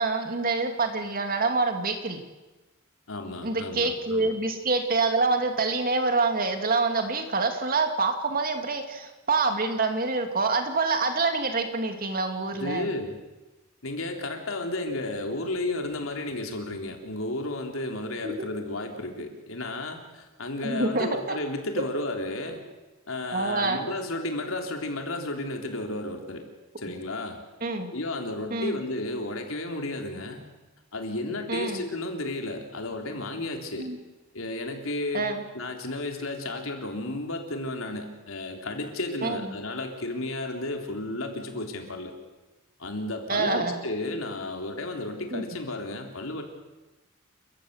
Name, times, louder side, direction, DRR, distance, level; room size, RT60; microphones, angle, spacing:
voice 1, 0.0-2.2 3.4-12.9 18.2-18.5 20.6-21.4 23.3-23.8 27.6-27.9 28.5-28.8 31.5-31.8 33.8-34.0 35.1-35.4 39.2-39.5 43.3-43.8 45.3-45.4, right 3 dB, 45° right, 5 dB, 2.6 m, -26 dB
voice 2, 3.1-4.3 12.5-13.2 13.8-22.6 23.1-26.5 26.8-27.4 27.9-30.4 30.9-33.9 34.3-42.1 42.8-46.4, left 2 dB, 80° left, 3 dB, 3.6 m, -33 dB
29.0 x 14.5 x 8.2 m, 1.1 s
head